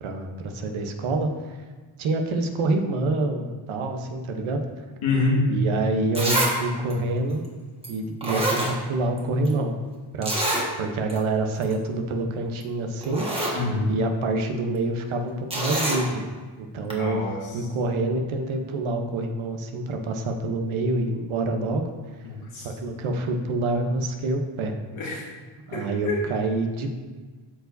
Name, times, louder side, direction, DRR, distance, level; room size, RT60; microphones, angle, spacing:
voice 1, 0.0-1.6 2.0-4.6 5.5-7.4 7.9-9.7 10.1-10.3 10.8-13.3 13.9-16.2 16.6-17.3 17.5-21.8 22.5-24.7 25.7-26.9, right 2 dB, 80° right, 4 dB, 1.0 m, -27 dB
voice 2, 5.0-5.4 13.5-13.9 16.9-17.4 22.3-22.7 24.9-25.3 25.7-26.2, left 3 dB, 90° left, -4 dB, 2.0 m, -26 dB
Zipper (clothing), 5.6-5.7 6.1-6.6 6.9-7.0 7.8-7.9 8.2-9.2 9.4-9.5 10.2-10.7 11.1-11.2 11.5-11.7 12.6-12.7 13.0-13.6 15.5-16.0 16.9-17.0, right 1 dB, 10° right, 1.4 m, -26 dB
12.5 x 4.7 x 2.7 m, 1.4 s
cardioid pair, 120°, 48 cm